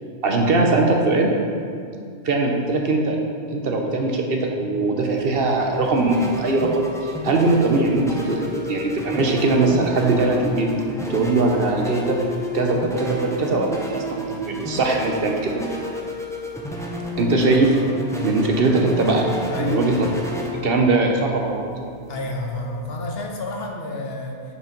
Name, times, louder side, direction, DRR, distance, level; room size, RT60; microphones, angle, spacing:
voice 1, 0.2-1.3 2.2-3.2 3.5-6.7 7.0-8.4 8.7-10.7 11.1-12.2 12.5-15.6 17.2-17.8 18.2-19.3 19.6-19.9 20.6-21.6, right 3 dB, 60° right, 1 dB, 0.9 m, -20 dB
sound 1, 5.0-23.2, left 1 dB, 5° left, 0.6 m, -31 dB
voice 2, 19.5-19.9 22.1-24.4, left 2 dB, 60° left, 1 dB, 1.0 m, -29 dB
6.6 x 5.0 x 5.1 m, 2.2 s
omnidirectional pair, 1.2 m